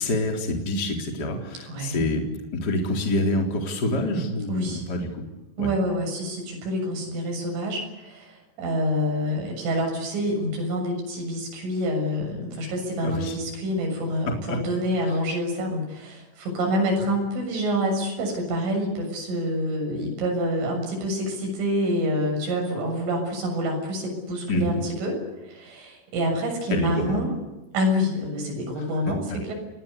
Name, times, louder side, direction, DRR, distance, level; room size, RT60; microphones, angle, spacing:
voice 1, 0.0-2.2 2.5-5.2 5.6-5.7 13.0-13.3 14.5-14.6 15.1-15.2 24.5-24.8 26.7-27.2 28.8-28.9, left 1 dB, 20° left, 3 dB, 3.9 m, -26 dB
voice 2, 1.7-2.0 4.5-4.8 5.6-25.2 25.4-27.3 27.7-29.5, equal, 75° right, 2 dB, 9.6 m, -27 dB
29.0 x 20.5 x 8.3 m, 1.0 s
omnidirectional pair, 5.7 m